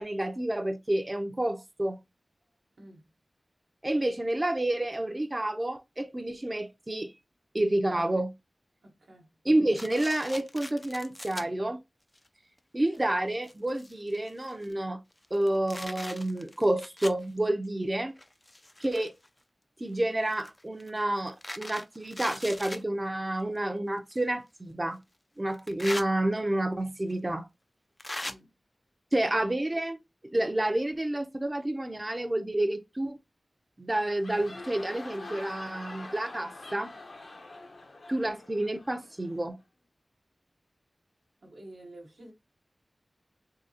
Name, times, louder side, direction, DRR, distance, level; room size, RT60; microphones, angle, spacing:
voice 1, 0.0-2.0 3.8-7.1 7.5-8.3 9.5-11.8 12.7-15.0 15.3-18.1 18.8-19.1 19.8-25.0 25.4-27.5 29.1-30.0 30.3-33.2 33.8-36.9 38.1-39.6, right 1 dB, 25° right, 0.5 m, -29 dB
voice 2, 2.7-3.1 8.8-9.3 28.2-28.5 41.4-42.3, right 1 dB, 80° right, 1.0 m, -50 dB
sound 1, 9.8-11.4 12.2-12.3 12.9-13.0 13.3-14.7 15.2-17.2 18.2-19.3 20.3-22.8 24.1-24.2 25.5-26.1 27.1-27.2 28.0-28.3, left 1 dB, 25° left, 0.3 m, -40 dB
sound 2, 34.0-39.5, left 2 dB, 70° left, 0.9 m, -45 dB
3.7 x 2.8 x 2.7 m
wide cardioid pair, 80°, 0 cm